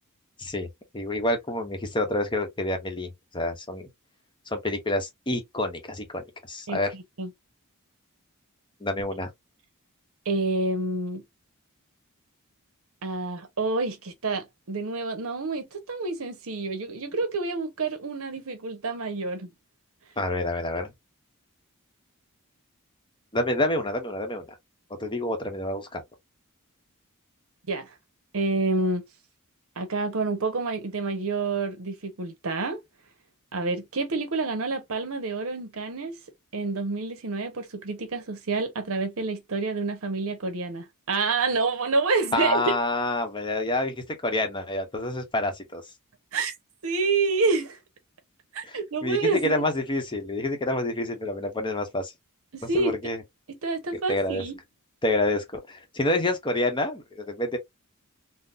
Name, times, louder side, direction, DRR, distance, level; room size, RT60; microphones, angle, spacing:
voice 1, 0.9-3.9 4.5-6.9 8.8-9.3 20.2-20.9 23.3-24.5 24.9-26.0 42.3-45.8 48.6-52.1 52.7-53.2 53.9-54.4 55.0-57.6, left 2 dB, 20° left, 0.8 m, -28 dB
voice 2, 6.7-7.3 10.3-11.2 13.0-19.5 27.7-27.9 28.3-29.0 29.8-32.8 33.5-36.2 36.5-42.6 46.3-46.5 46.8-47.8 48.5-49.6 52.5-52.9 53.5-54.6, right 3 dB, 65° right, 0.9 m, -28 dB
3.8 x 2.1 x 2.5 m
head